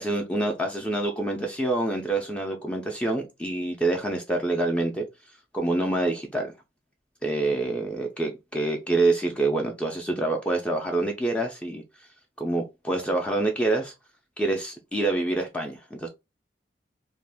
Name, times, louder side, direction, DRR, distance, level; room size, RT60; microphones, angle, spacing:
voice 1, 0.0-5.1 5.5-6.5 7.2-11.8 12.4-13.9 14.4-16.1, right 2 dB, 5° left, 0.4 m, -26 dB
2.4 x 2.1 x 3.3 m
head